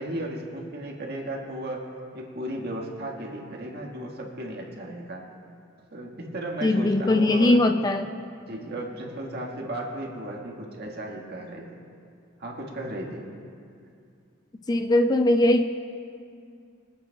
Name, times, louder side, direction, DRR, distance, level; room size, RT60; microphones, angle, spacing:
voice 1, 0.0-1.8 2.1-5.2 5.9-7.6 8.5-11.8 12.4-13.3, right 1 dB, 55° right, -1 dB, 1.7 m, -35 dB
voice 2, 6.6-8.1 14.7-15.6, left 1 dB, 20° left, 7 dB, 0.3 m, -20 dB
24.0 x 8.9 x 2.3 m, 2.4 s
head